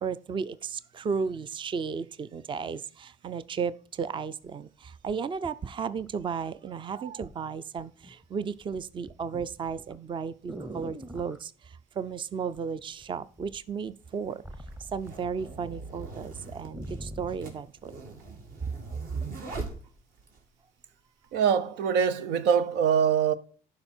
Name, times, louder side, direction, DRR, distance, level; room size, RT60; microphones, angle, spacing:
voice 1, 0.0-11.5 12.0-14.4 14.9-17.9, right 6 dB, 30° right, 0.5 m, -34 dB
sound 1, 4.5-4.6 5.1-6.6 7.2-7.4 7.8-8.3 8.6-11.4 12.5-13.1 13.4-15.7 16.0-16.1 16.4-17.5 18.2-18.3, right 1 dB, 10° right, 0.9 m, -43 dB
sound 2, 13.0-13.1 14.0-20.4, right 3 dB, 60° right, 2.5 m, -42 dB
voice 2, 21.3-23.3, right 7 dB, 90° right, 0.8 m, -23 dB
11.5 x 4.9 x 4.4 m
cardioid pair, 110°, 17 cm